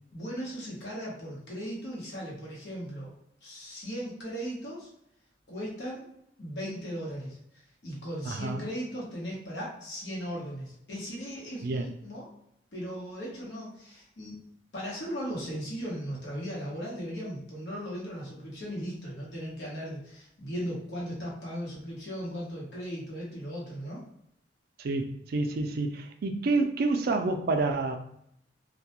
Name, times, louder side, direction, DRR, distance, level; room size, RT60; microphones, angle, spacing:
voice 1, 0.1-3.1 3.4-4.9 5.5-6.1 6.4-12.3 12.7-24.0, equal, 75° left, -4 dB, 0.9 m, -37 dB
voice 2, 8.3-8.7 11.6-11.9 24.8-28.0, right 3 dB, 60° right, 6 dB, 0.3 m, -28 dB
2.2 x 2.1 x 2.8 m, 0.75 s
head